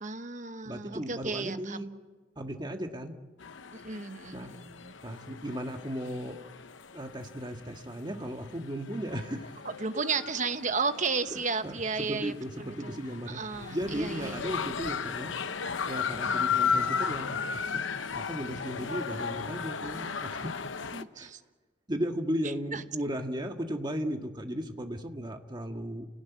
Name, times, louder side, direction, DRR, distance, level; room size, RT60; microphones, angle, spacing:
voice 1, 0.0-1.8 3.7-4.9 9.8-12.3 12.6-13.0 13.3-14.6 16.3-16.5 20.9-21.4 22.7-22.8, right 4 dB, 40° right, 9 dB, 1.1 m, -33 dB
voice 2, 0.7-1.9 2.4-3.1 4.3-4.5 5.0-6.4 6.9-9.5 11.3-13.4 13.7-15.3 15.9-17.8 18.1-20.5 21.2-21.3 21.9-26.1, equal, 25° right, 4 dB, 1.7 m, -36 dB
sound 1, 3.4-21.0, left 6 dB, 85° left, 0.9 m, -35 dB
29.5 x 18.0 x 9.4 m, 1.3 s
head